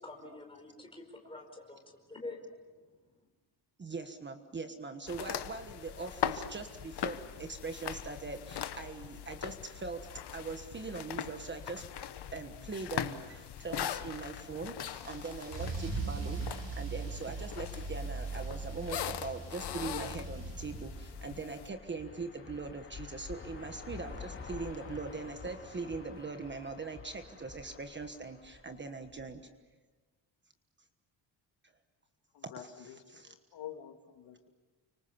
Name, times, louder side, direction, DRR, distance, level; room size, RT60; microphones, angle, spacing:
voice 1, 0.0-1.8 2.1-2.4 2.7-2.9, left 2 dB, 10° left, 2 dB, 5.1 m, -46 dB
voice 2, 3.8-10.1 10.3-14.8 15.0-29.4 32.4-32.7 33.1-33.3, right 4 dB, 25° right, 7 dB, 1.3 m, -41 dB
sound 1, 5.1-21.7, left 10 dB, 65° left, 1.3 m, -41 dB
Car / Engine starting / Accelerating revving vroom, 14.8-21.3, right 4 dB, 85° right, 6.6 m, -40 dB
sound 2, 20.2-29.4, left 5 dB, 30° left, 3.2 m, -49 dB
voice 3, 32.3-34.5, left 10 dB, 80° left, 5 dB, 2.5 m, -48 dB
30.0 x 25.5 x 7.0 m, 1.2 s
wide cardioid pair, 170°, 43 cm